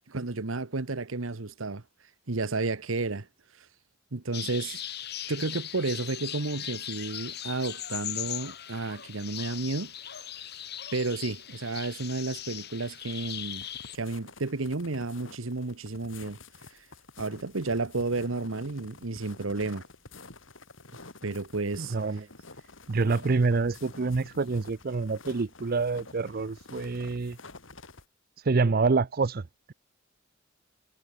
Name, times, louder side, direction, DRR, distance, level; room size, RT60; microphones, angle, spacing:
voice 1, 0.0-1.8 2.3-3.3 4.1-4.8 5.3-9.9 10.9-13.6 13.9-16.4 17.2-19.8 21.2-21.9, right 3 dB, 90° right, 1.2 m, -32 dB
sound 1, 4.3-14.0, left 11 dB, 55° left, 4.8 m, -39 dB
sound 2, 13.5-28.0, left 3 dB, 75° left, 4.6 m, -50 dB
voice 2, 21.8-22.3 22.9-27.4 28.4-29.4, right 4 dB, 50° right, 0.5 m, -27 dB
head